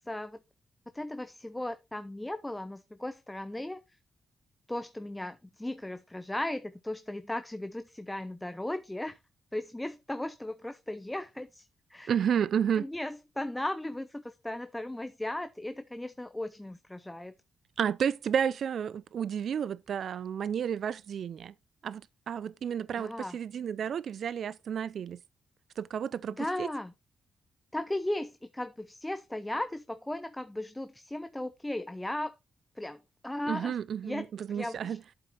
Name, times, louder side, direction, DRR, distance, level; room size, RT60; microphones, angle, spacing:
voice 1, 0.1-0.4 0.9-3.8 4.7-9.2 9.5-12.1 12.8-17.3 23.0-23.4 26.3-26.9 27.7-32.3 32.8-33.8 34.0-35.0, left 1 dB, 10° left, 0.7 m, -36 dB
voice 2, 12.1-12.9 17.8-21.5 21.8-25.2 25.8-26.7 33.5-35.0, right 8 dB, 65° right, 0.5 m, -31 dB
7.9 x 7.6 x 4.1 m
cardioid pair, 95°, 0 cm